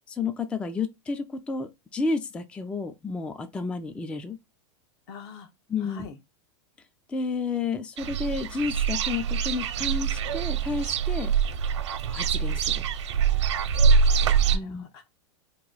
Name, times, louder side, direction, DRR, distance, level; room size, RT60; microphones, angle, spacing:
voice 1, 0.1-4.4 5.7-6.1 7.1-11.3 12.1-12.8 14.5-14.8, left 4 dB, 5° left, 0.3 m, -31 dB
voice 2, 5.1-5.5 5.8-6.2 13.8-15.1, left 6 dB, 55° left, 1.0 m, -45 dB
sound 1, 8.0-14.6, right 6 dB, 80° right, 0.7 m, -24 dB
2.9 x 2.6 x 3.8 m
supercardioid pair, 135°, 15 cm